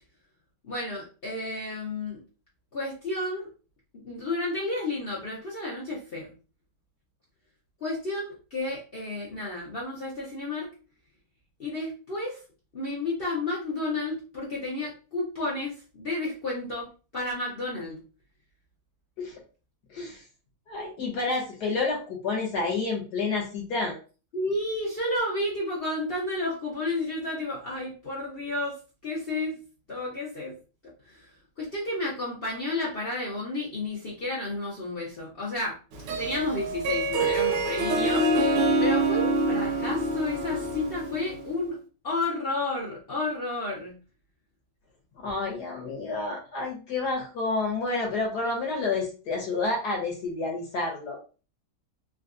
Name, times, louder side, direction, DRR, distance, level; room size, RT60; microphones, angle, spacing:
voice 1, 0.6-2.2 2.7-3.5 4.0-6.3 7.8-10.7 11.6-12.4 12.7-16.9 17.1-18.0 24.3-29.5 29.9-30.6 31.0-31.3 31.6-35.8 36.2-41.8 42.0-43.9, left 2 dB, 85° left, -6 dB, 0.5 m, -31 dB
voice 2, 19.9-20.2 20.7-24.0 45.2-51.2, left 3 dB, 60° left, -1 dB, 1.2 m, -29 dB
Harp, 35.9-41.5, right 2 dB, 75° right, 1.4 m, -26 dB
3.8 x 2.3 x 2.5 m, 0.34 s
omnidirectional pair, 2.3 m